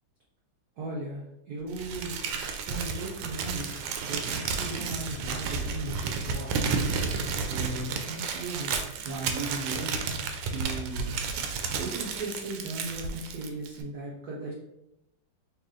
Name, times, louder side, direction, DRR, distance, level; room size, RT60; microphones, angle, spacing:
voice 1, 0.8-2.2 2.6-6.9 7.4-11.2 11.7-14.5, right 2 dB, 65° right, -5 dB, 1.0 m, -37 dB
Crumpling crinkling, 1.7-13.8, right 5 dB, 85° right, 1.5 m, -32 dB
3.2 x 3.0 x 3.6 m, 0.85 s
omnidirectional pair, 2.4 m